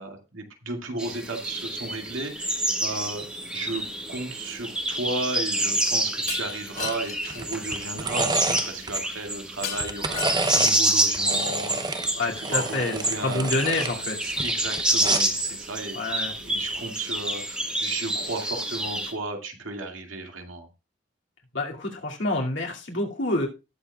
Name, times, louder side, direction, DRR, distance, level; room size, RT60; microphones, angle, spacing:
voice 1, 0.0-3.3 3.5-13.5 14.2-20.7, right 2 dB, 85° right, 3 dB, 2.2 m, -34 dB
sound 1, 1.0-19.1, right 1 dB, 5° right, 1.4 m, -28 dB
Shatter, 6.3-7.4 9.6-10.9, left 8 dB, 45° left, 2.6 m, -35 dB
sound 2, 6.8-7.0 7.3-9.0 9.6-10.8 11.1-13.9 14.3-15.4 16.6-16.8, right 3 dB, 20° right, 0.6 m, -31 dB
voice 2, 12.2-13.0 13.2-14.3 15.9-16.3 21.5-23.5, left 2 dB, 70° left, -1 dB, 2.4 m, -27 dB
19.0 x 7.0 x 2.3 m, 0.29 s
head